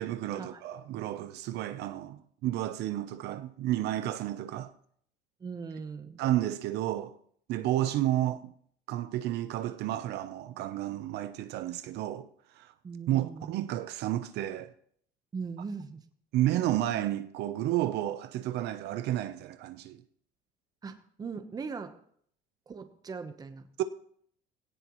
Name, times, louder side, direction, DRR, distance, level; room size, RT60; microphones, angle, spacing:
voice 1, 0.0-4.7 6.2-7.2 7.5-8.5 8.9-12.3 12.5-12.7 13.1-14.7 16.3-20.0 23.8-23.9, right 13 dB, 65° right, 0.8 m, -31 dB
voice 2, 5.4-6.2 12.8-13.6 15.3-16.0 20.8-22.0 22.7-23.6, right 5 dB, 20° right, 1.0 m, -40 dB
19.5 x 17.0 x 3.1 m
cardioid pair, 160°, 19 cm